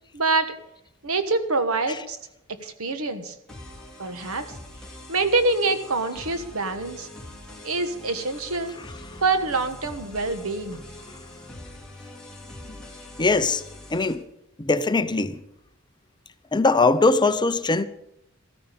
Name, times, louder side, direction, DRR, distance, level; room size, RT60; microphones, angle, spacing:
voice 1, 0.1-0.5 1.0-2.2 2.5-3.3 4.0-4.5 5.1-7.1 7.6-8.7 9.2-10.8, right 3 dB, 85° right, 1.4 m, -25 dB
sound 1, 3.5-14.1, left 1 dB, 5° left, 2.8 m, -43 dB
voice 2, 13.2-13.6 13.9-14.2 14.6-15.4 16.5-17.8, left 3 dB, 20° left, 0.6 m, -21 dB
14.0 x 13.5 x 5.2 m
head